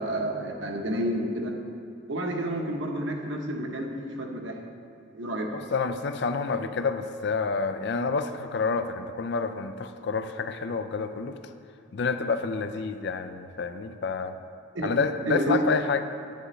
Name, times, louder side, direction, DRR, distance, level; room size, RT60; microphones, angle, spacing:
voice 1, 0.0-1.5 2.1-4.6 5.1-5.5 14.7-15.0 15.3-15.6, right 1 dB, 60° right, 2 dB, 1.0 m, -30 dB
voice 2, 5.5-11.4 11.9-14.4 14.8-16.0, left 4 dB, 55° left, 9 dB, 0.4 m, -28 dB
10.5 x 9.6 x 3.2 m, 2.6 s
head